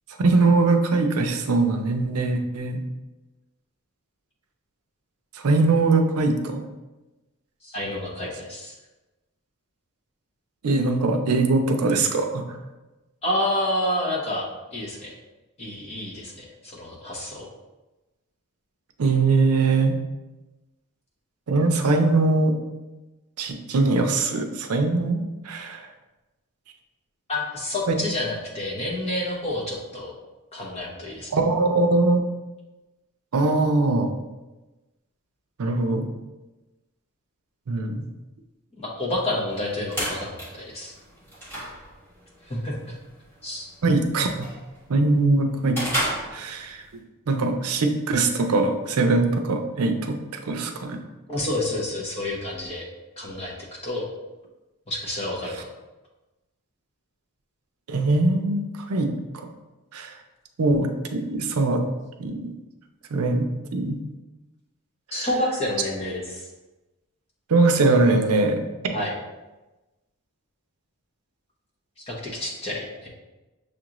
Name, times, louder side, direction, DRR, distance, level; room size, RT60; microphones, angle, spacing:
voice 1, 0.2-2.8 5.4-6.6 10.6-12.6 19.0-19.9 21.5-22.5 23.4-25.9 27.9-28.0 31.3-32.2 33.3-34.2 35.6-36.1 37.7-38.0 43.8-44.5 44.9-45.8 46.3-46.8 47.3-50.2 50.4-51.0 57.9-59.5 59.9-60.1 60.6-61.8 62.2-62.5 63.1-63.5 63.7-64.0 65.1-65.3 67.5-68.6, right 3 dB, 85° right, 5 dB, 0.5 m, -22 dB
voice 2, 7.6-8.7 13.2-14.4 14.7-15.1 15.6-17.5 27.3-30.1 30.5-31.3 38.7-40.9 42.5-43.0 43.4-43.7 51.3-52.8 53.2-53.5 53.8-54.1 54.9-55.7 65.1-66.5 68.9-69.1 72.1-73.1, left 1 dB, 30° left, -4 dB, 0.9 m, -29 dB
sound 1, 39.5-47.0, right 1 dB, 10° left, 1.2 m, -34 dB
6.5 x 2.5 x 3.0 m, 1.1 s
head